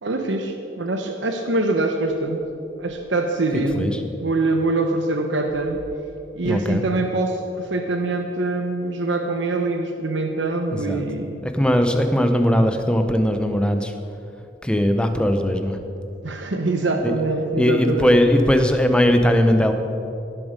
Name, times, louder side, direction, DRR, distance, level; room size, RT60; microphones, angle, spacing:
voice 1, 0.0-2.4 2.8-3.9 4.2-5.8 6.3-11.4 16.2-18.2, right 2 dB, 85° right, 4 dB, 0.9 m, -24 dB
voice 2, 6.4-6.8 10.8-11.0 11.4-13.9 14.6-15.8 17.0-17.1 17.6-19.7, equal, 5° left, 6 dB, 0.7 m, -19 dB
17.5 x 7.3 x 5.2 m, 2.8 s
head